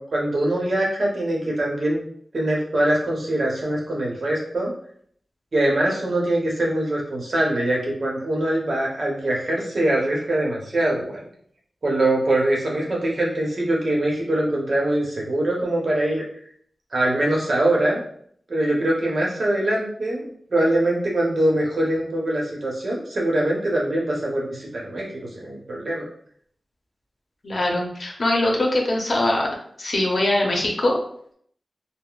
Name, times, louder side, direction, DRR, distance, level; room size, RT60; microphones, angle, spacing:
voice 1, 0.0-2.0 2.3-4.7 5.5-11.2 11.8-16.2 16.9-18.0 18.5-25.1 25.4-26.0, right 1 dB, 65° right, -3 dB, 0.8 m, -23 dB
voice 2, 27.4-29.5 29.8-30.9, left 1 dB, 65° left, 0 dB, 0.7 m, -22 dB
3.6 x 2.1 x 2.3 m, 0.63 s
wide cardioid pair, 75°, 0 cm